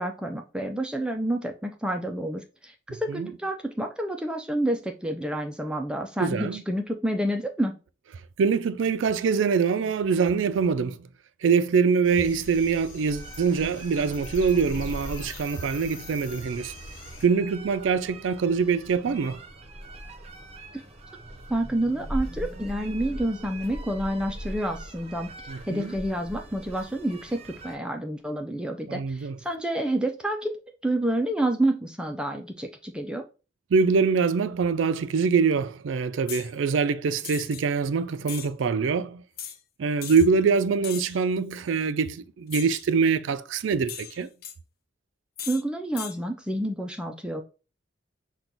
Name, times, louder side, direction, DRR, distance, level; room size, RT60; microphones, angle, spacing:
voice 1, 0.0-7.8 20.7-20.8 21.5-25.3 25.7-33.2 45.5-47.4, right 1 dB, 5° right, 0.3 m, -29 dB
voice 2, 6.2-6.6 8.4-11.0 11.4-16.7 17.2-19.4 25.5-25.9 28.9-29.4 33.7-39.2 39.8-44.3, right 5 dB, 80° right, 0.4 m, -24 dB
sound 1, 12.0-17.3, left 3 dB, 85° left, 0.8 m, -44 dB
sound 2, 13.1-27.8, right 1 dB, 35° right, 0.7 m, -40 dB
sound 3, 36.3-36.5 37.2-37.6 38.3-38.5 39.4-39.6 40.0-40.3 40.8-41.2 42.5-42.9 43.9-44.6 45.4-45.6 46.0-46.2, left 9 dB, 50° left, 0.5 m, -38 dB
6.0 x 2.3 x 3.9 m
head